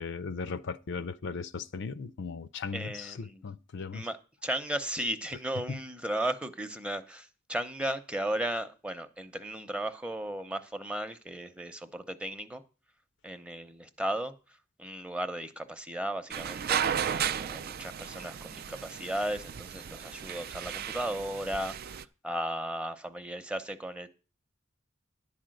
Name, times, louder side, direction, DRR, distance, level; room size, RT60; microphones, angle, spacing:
voice 1, 0.0-4.1 5.7-5.8, left 5 dB, 60° left, 0.5 m, -37 dB
voice 2, 2.7-3.4 3.9-4.2 4.4-12.6 13.2-14.3 14.8-24.1, right 1 dB, 5° right, 0.7 m, -35 dB
sound 1, 16.3-22.0, right 8 dB, 45° right, 0.4 m, -34 dB
11.0 x 4.9 x 7.7 m
head